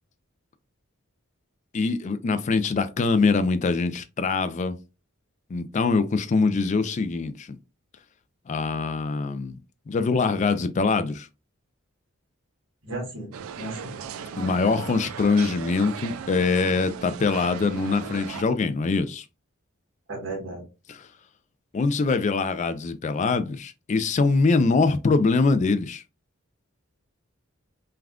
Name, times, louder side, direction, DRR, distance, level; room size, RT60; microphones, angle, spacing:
voice 1, 1.7-4.8 5.5-7.6 8.5-9.6 9.9-11.3 14.4-19.2 21.7-26.0, left 4 dB, 35° left, 0.3 m, -23 dB
voice 2, 12.8-13.9 20.1-20.7, right 2 dB, 65° right, 1.3 m, -35 dB
sound 1, 13.3-18.4, right 7 dB, 85° right, 0.3 m, -37 dB
3.4 x 2.3 x 2.3 m
head